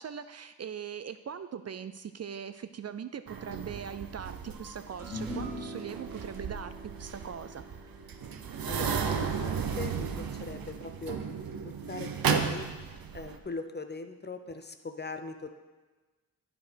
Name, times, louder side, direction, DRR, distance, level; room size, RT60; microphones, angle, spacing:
voice 1, 0.0-7.6, right 7 dB, 45° right, 11 dB, 0.4 m, -41 dB
sound 1, 3.3-13.4, right 6 dB, 75° right, 0.7 m, -34 dB
sound 2, 5.0-11.5, equal, 5° right, 1.8 m, -44 dB
voice 2, 8.7-11.2 11.6-12.7 13.1-15.5, left 3 dB, 30° left, 8 dB, 0.7 m, -40 dB
8.9 x 5.0 x 5.1 m, 1.3 s
cardioid pair, 50°, 36 cm